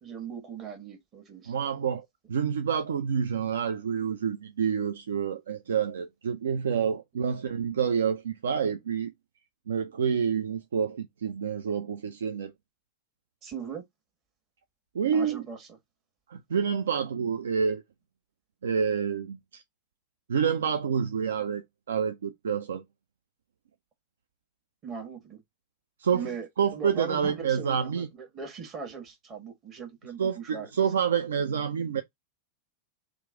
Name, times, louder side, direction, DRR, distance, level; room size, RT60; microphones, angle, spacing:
voice 1, 0.0-1.6 13.4-13.8 15.1-15.8 24.8-25.4 26.1-30.9, right 6 dB, 30° right, 1.2 m, -39 dB
voice 2, 1.5-9.1 9.7-12.5 14.9-15.4 16.3-17.8 18.6-19.6 20.3-22.8 26.0-26.2 26.6-28.1 30.2-32.0, right 7 dB, 65° right, 0.3 m, -28 dB
3.0 x 2.5 x 3.5 m
figure-of-eight pair, 90°, 0 cm